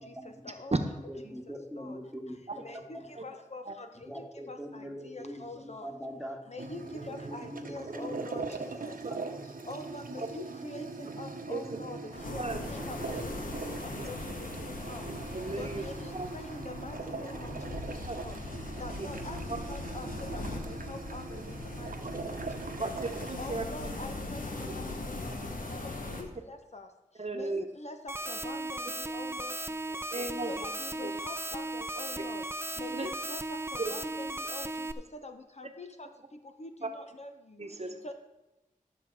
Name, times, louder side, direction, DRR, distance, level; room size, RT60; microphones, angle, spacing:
voice 1, 0.0-0.5 0.8-2.7 2.9-3.2 4.1-6.4 6.9-8.5 9.1-9.4, equal, ahead, 0 dB, 1.8 m, -43 dB
voice 2, 2.6-5.9 6.5-8.4 8.8-8.9 9.7-12.0 12.3-13.5 13.8-14.3 14.6-15.0 15.6-18.4 18.8-19.4 19.7-22.9 23.4-25.3 25.8-25.9 26.2-26.9 27.3-29.5 29.9-30.0 30.5-32.4 32.8-34.9 35.1-36.1 36.6-37.3 38.0-38.1, left 2 dB, 50° left, 6 dB, 0.9 m, -45 dB
sound 1, 6.6-23.5, right 4 dB, 80° right, 0.9 m, -41 dB
sound 2, 12.1-26.2, left 2 dB, 75° left, 1.3 m, -40 dB
voice 3, 15.3-15.8 16.1-16.3 18.0-18.1 19.0-19.1 22.8-23.6 26.1-26.2 27.2-27.6 30.1-30.5 31.0-31.1 32.9-33.1 33.8-33.9 37.6-38.0, right 3 dB, 50° right, 5 dB, 1.1 m, -34 dB
sound 3, 28.1-34.9, right 2 dB, 15° right, 0.5 m, -36 dB
12.5 x 6.6 x 4.8 m, 0.99 s
wide cardioid pair, 55°, 14 cm